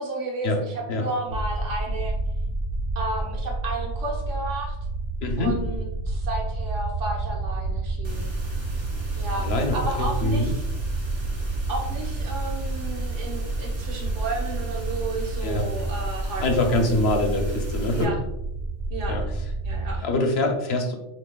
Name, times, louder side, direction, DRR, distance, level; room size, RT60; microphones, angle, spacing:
voice 1, 0.0-2.1 2.9-4.8 5.4-8.3 9.1-9.5 9.7-10.6 11.7-16.8 17.9-18.2 18.9-19.2 19.6-20.1, right 2 dB, 90° right, -1 dB, 1.3 m, -32 dB
sound 1, 1.3-20.0, right 2 dB, 65° right, 0.9 m, -29 dB
voice 2, 5.2-5.6 9.4-10.5 15.4-15.7 16.4-18.1 19.1-19.2 20.0-20.9, left 2 dB, 65° left, 3 dB, 0.9 m, -24 dB
sound 2, 8.0-18.0, right 1 dB, 25° right, 0.8 m, -41 dB
6.8 x 2.9 x 2.2 m, 0.90 s
omnidirectional pair, 1.2 m